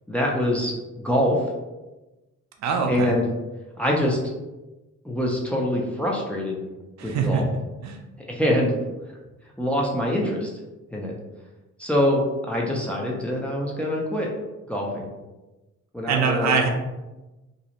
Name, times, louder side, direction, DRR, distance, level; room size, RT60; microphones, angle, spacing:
voice 1, 0.1-0.7 1.0-1.4 2.9-3.2 3.8-4.2 5.0-6.6 7.0-7.4 8.3-8.7 9.6-10.5 10.9-11.2 11.8-14.3 14.7-15.1 15.9-16.6, left 1 dB, 5° left, -2 dB, 0.5 m, -24 dB
voice 2, 2.6-3.1 7.0-7.5 7.8-8.0 16.1-16.7, right 5 dB, 65° right, 2 dB, 0.5 m, -23 dB
2.5 x 2.0 x 2.8 m, 1.1 s
cardioid pair, 90°, 30 cm